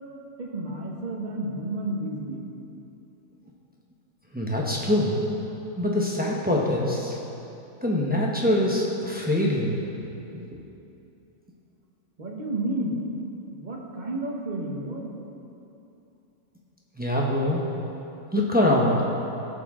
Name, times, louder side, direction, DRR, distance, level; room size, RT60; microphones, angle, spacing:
voice 1, 0.4-2.5 12.2-13.1 13.6-15.1, right 1 dB, 35° right, -2 dB, 1.2 m, -31 dB
voice 2, 4.3-5.2 5.8-7.2 7.8-9.8 10.4-10.5 17.0-17.6 18.3-19.0, left 1 dB, 10° right, -3 dB, 0.9 m, -24 dB
15.5 x 6.2 x 3.7 m, 2.8 s
omnidirectional pair, 1.5 m